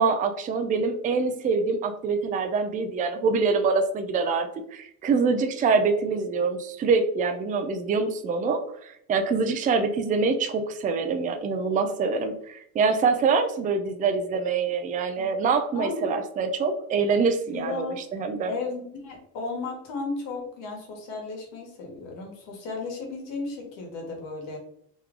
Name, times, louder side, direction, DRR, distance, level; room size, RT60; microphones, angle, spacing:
voice 1, 0.0-18.5, right 4 dB, 20° right, 7 dB, 0.3 m, -25 dB
voice 2, 17.5-18.1 18.5-24.6, left 3 dB, 70° left, 1 dB, 1.4 m, -34 dB
3.1 x 2.3 x 3.6 m, 0.71 s
supercardioid pair, 95°, 45 cm